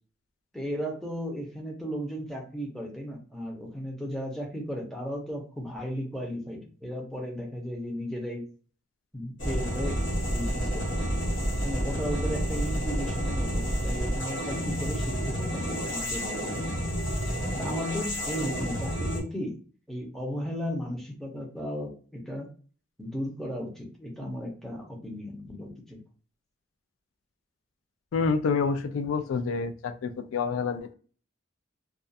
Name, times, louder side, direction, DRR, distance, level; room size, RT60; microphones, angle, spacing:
voice 1, 0.5-8.5 9.1-10.0 10.3-11.1 11.6-16.5 17.6-19.6 19.9-22.5 23.0-26.0, equal, ahead, -1 dB, 0.6 m, -35 dB
sound 1, 9.4-19.2, equal, 65° left, 1.0 m, -30 dB
voice 2, 28.1-30.9, left 5 dB, 90° left, 9 dB, 0.3 m, -28 dB
2.3 x 2.3 x 2.6 m, 0.40 s
head